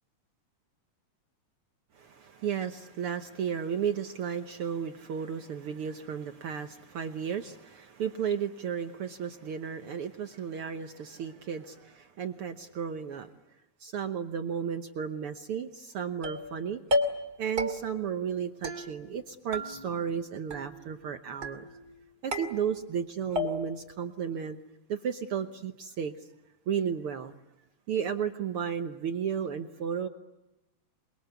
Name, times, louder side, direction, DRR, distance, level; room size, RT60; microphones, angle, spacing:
voice 1, 1.9-13.3 13.8-16.8 17.4-21.7 22.2-24.6 24.9-26.3 26.7-27.3 27.9-30.1, right 7 dB, 80° right, 7 dB, 1.2 m, -33 dB
sound 1, 16.2-16.6 16.9-17.3 17.6-18.1 18.6-19.2 19.5-20.2 20.5-21.0 21.4-21.9 22.3-23.0 23.4-23.9, left 1 dB, 30° right, 2.8 m, -33 dB
28.5 x 22.5 x 8.2 m, 0.98 s
omnidirectional pair, 4.0 m